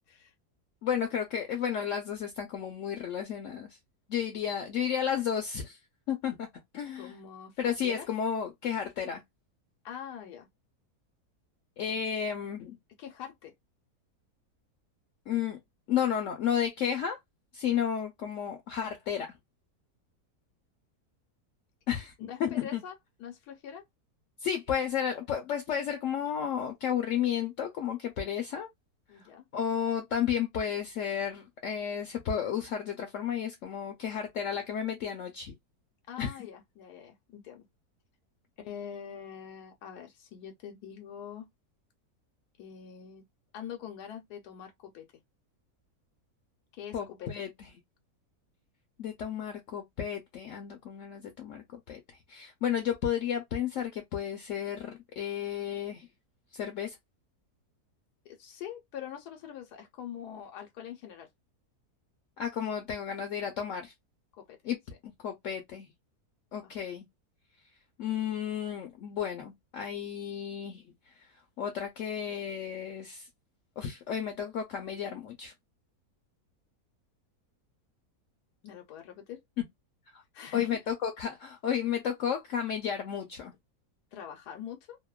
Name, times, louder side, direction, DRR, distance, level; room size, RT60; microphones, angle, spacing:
voice 1, 0.8-3.8 4.1-5.8 6.1-6.5 6.7-7.1 7.6-9.2 11.8-12.8 15.3-15.6 15.9-17.2 17.5-19.3 21.9-22.1 22.4-22.8 24.4-28.7 29.2-35.5 36.2-36.4 46.9-47.7 49.0-52.0 52.3-56.1 56.5-57.0 62.4-63.9 64.6-64.8 65.0-65.9 66.5-67.1 68.0-71.3 71.6-73.3 73.8-75.5 80.1-80.2 80.5-83.5, left 8 dB, 65° left, 0.8 m, -32 dB
voice 2, 7.0-7.6 7.8-8.1 9.8-10.5 11.9-12.0 13.0-13.5 22.2-23.8 29.1-29.5 36.1-37.6 38.6-41.5 42.6-43.2 43.5-45.1 46.7-47.3 58.2-61.3 64.4-64.6 66.6-66.7 78.6-79.4 80.3-80.7 84.1-85.0, left 9 dB, 85° left, 1.2 m, -44 dB
2.8 x 2.1 x 2.2 m
omnidirectional pair, 1.7 m